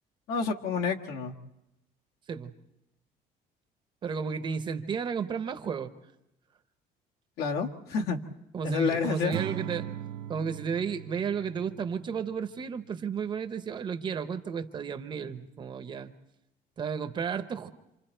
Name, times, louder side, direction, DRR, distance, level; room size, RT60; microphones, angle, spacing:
voice 1, 0.3-1.3 7.4-8.2 8.6-9.4, left 5 dB, 80° left, 1 dB, 1.7 m, -29 dB
voice 2, 4.0-5.9 8.5-9.9 10.3-16.1 16.8-17.7, right 6 dB, 30° right, 10 dB, 0.8 m, -33 dB
Acoustic guitar / Strum, 9.3-12.6, right 12 dB, 80° right, 0.8 m, -39 dB
27.5 x 27.0 x 4.4 m, 0.90 s
cardioid pair, 175°, 16 cm